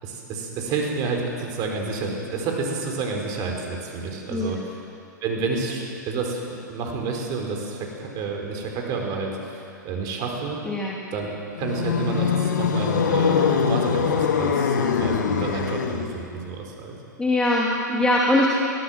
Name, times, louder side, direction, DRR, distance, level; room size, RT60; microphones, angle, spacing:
voice 1, 0.0-4.8 5.2-10.6 11.1-11.3 11.6-17.0 17.9-18.0, right 4 dB, 40° right, 1 dB, 4.9 m, -29 dB
voice 2, 4.3-4.6 10.6-10.9 17.2-18.5, left 1 dB, 10° left, -4 dB, 2.7 m, -22 dB
sound 1, 11.6-16.2, left 6 dB, 70° left, 1.9 m, -23 dB
22.0 x 17.0 x 7.6 m, 2.5 s
figure-of-eight pair, 105°, 10 cm